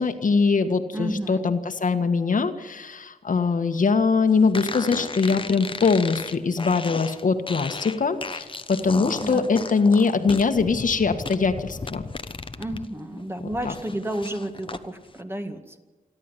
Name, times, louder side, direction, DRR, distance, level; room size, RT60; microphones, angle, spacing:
voice 1, 0.0-12.0 13.6-13.7, left 4 dB, 65° left, 7 dB, 1.7 m, -22 dB
voice 2, 0.9-1.6 9.2-9.5 12.6-15.8, right 1 dB, 15° right, 6 dB, 2.1 m, -31 dB
sound 1, 4.5-12.8 13.2-14.8, left 4 dB, 35° left, 1.1 m, -35 dB
28.0 x 12.0 x 9.9 m, 1.3 s
wide cardioid pair, 120°, 15 cm